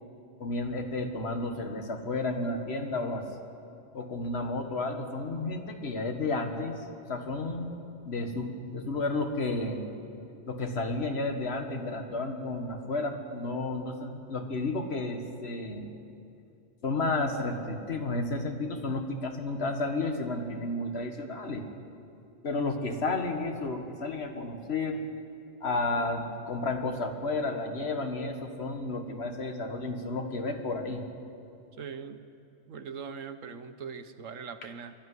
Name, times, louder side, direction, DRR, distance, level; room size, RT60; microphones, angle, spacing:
voice 1, 0.4-3.2 3.9-6.8 7.1-7.7 8.1-9.8 10.5-15.9 16.8-21.6 22.4-25.0 25.6-31.0, left 2 dB, 55° left, 5 dB, 1.8 m, -32 dB
voice 2, 31.8-32.2 32.7-34.9, right 6 dB, 90° right, 10 dB, 1.4 m, -41 dB
21.5 x 13.5 x 9.6 m, 2.6 s
omnidirectional pair, 1.3 m